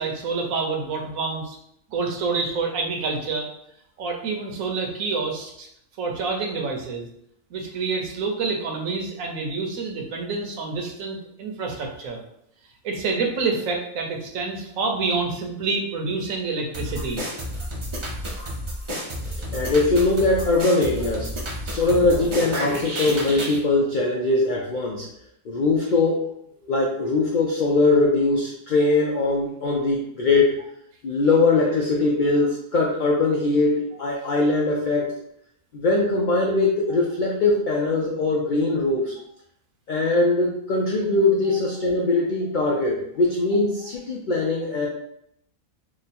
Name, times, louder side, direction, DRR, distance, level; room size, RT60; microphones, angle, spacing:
voice 1, 0.0-1.6 1.9-3.5 4.0-5.7 6.0-7.1 7.5-12.2 12.8-17.2 41.5-41.6, right 4 dB, 75° right, 1 dB, 1.1 m, -27 dB
sound 1, 16.7-23.6, equal, 45° right, 0.4 m, -31 dB
voice 2, 19.3-21.3 21.6-25.1 25.5-26.3 26.6-30.6 31.0-35.1 35.7-39.1 39.9-44.9, left 3 dB, 85° left, -1 dB, 0.4 m, -21 dB
3.0 x 2.2 x 4.1 m, 0.74 s
omnidirectional pair, 1.5 m